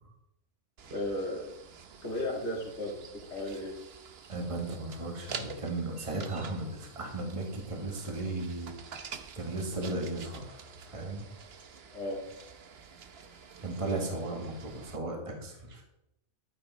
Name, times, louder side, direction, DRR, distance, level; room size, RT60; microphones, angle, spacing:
sound 1, 0.8-15.0, right 6 dB, 55° right, 1.0 m, -48 dB
voice 1, 0.9-1.5 2.0-3.8 11.9-12.2, left 1 dB, 55° left, -3 dB, 2.2 m, -35 dB
voice 2, 4.3-9.0 9.3-10.6 10.9-11.2 13.6-15.8, right 2 dB, 25° right, 1 dB, 1.8 m, -36 dB
11.5 x 9.3 x 4.1 m, 0.85 s
omnidirectional pair, 1.4 m